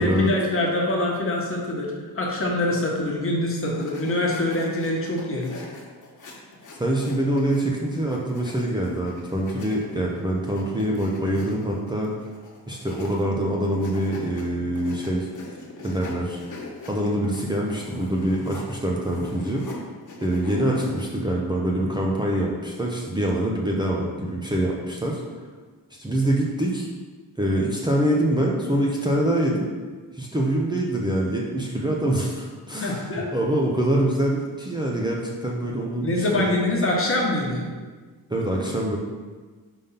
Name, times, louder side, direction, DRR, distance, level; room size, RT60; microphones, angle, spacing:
voice 1, 0.0-5.6 32.8-33.3 36.0-37.6, left 1 dB, 35° left, -2 dB, 1.3 m, -24 dB
sound 1, 3.8-7.6 7.9-13.3 13.6-14.4 14.8-19.8 20.0-21.0, left 3 dB, 55° left, 1.4 m, -42 dB
voice 2, 6.8-12.1 12.7-15.3 15.8-16.4 16.9-19.6 20.2-25.2 26.0-26.9 27.4-29.7 30.1-36.5 38.3-39.0, right 1 dB, 10° right, -3 dB, 0.7 m, -25 dB
5.3 x 3.7 x 5.6 m, 1.4 s
cardioid pair, 110°, 36 cm